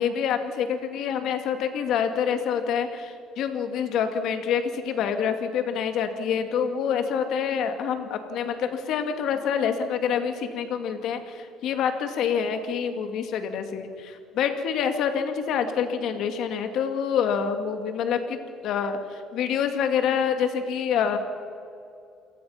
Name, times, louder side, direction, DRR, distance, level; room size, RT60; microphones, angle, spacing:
voice 1, 0.0-18.4 18.6-21.2, left 7 dB, 65° left, 7 dB, 2.3 m, -27 dB
28.0 x 18.5 x 5.8 m, 2.4 s
cardioid pair, 140°, 0 cm